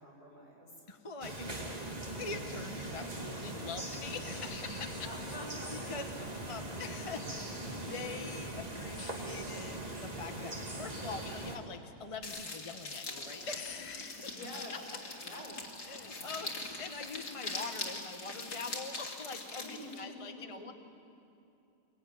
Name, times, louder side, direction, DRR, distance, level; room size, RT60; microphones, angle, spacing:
voice 1, 0.0-0.9 3.0-3.3 5.0-6.5 14.2-14.8 15.2-15.6 16.2-16.5 19.6-20.7, left 1 dB, 65° left, -3 dB, 6.6 m, -48 dB
voice 2, 0.9-5.3 5.7-6.1 6.5-14.3 14.7-14.8 15.9-20.7, left 4 dB, 25° left, 6 dB, 1.0 m, -44 dB
sound 1, 1.2-11.6, right 1 dB, 25° right, 2.2 m, -41 dB
sound 2, 12.2-20.0, left 3 dB, 85° left, 3.1 m, -42 dB
Gurgling / Toilet flush, 13.1-17.0, right 1 dB, 55° right, 6.1 m, -59 dB
24.0 x 22.5 x 9.5 m, 2.7 s
omnidirectional pair, 1.7 m